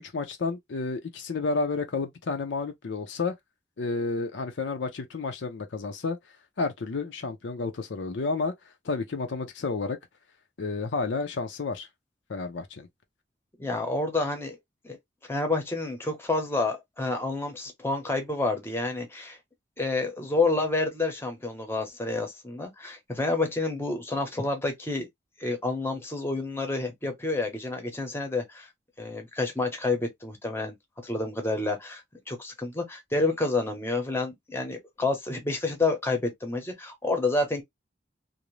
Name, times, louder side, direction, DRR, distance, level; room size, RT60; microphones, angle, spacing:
voice 1, 0.0-3.3 3.8-6.2 6.6-8.5 8.8-10.0 10.6-11.9 12.3-12.9, left 3 dB, 80° left, 0.5 m, -31 dB
voice 2, 13.6-14.6 14.8-15.0 15.3-19.4 19.8-25.1 25.4-28.7 29.0-30.7 31.0-32.0 32.3-37.6, left 2 dB, 15° left, 0.7 m, -29 dB
2.6 x 2.0 x 3.0 m
head